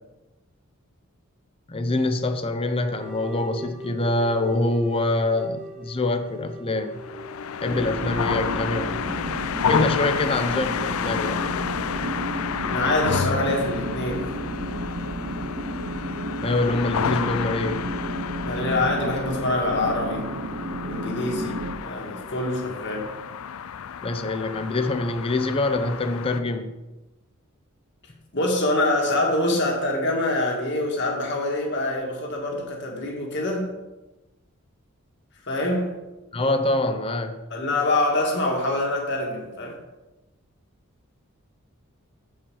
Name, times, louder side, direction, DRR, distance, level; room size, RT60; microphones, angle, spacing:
voice 1, 1.7-7.0 7.6-9.4 9.7-11.5 16.4-17.9 24.0-26.8 36.3-37.4, left 2 dB, 25° left, 0.6 m, -25 dB
sound 1, 2.8-9.5, right 2 dB, 5° right, 1.1 m, -42 dB
sound 2, 6.9-26.4, left 7 dB, 75° left, 0.4 m, -31 dB
sound 3, 7.7-21.8, right 1 dB, 60° right, 0.8 m, -32 dB
voice 2, 12.7-14.3 18.4-20.4 20.9-23.2 28.3-33.7 35.5-35.9 37.5-39.8, left 2 dB, 55° left, 2.0 m, -25 dB
7.1 x 5.5 x 7.0 m
head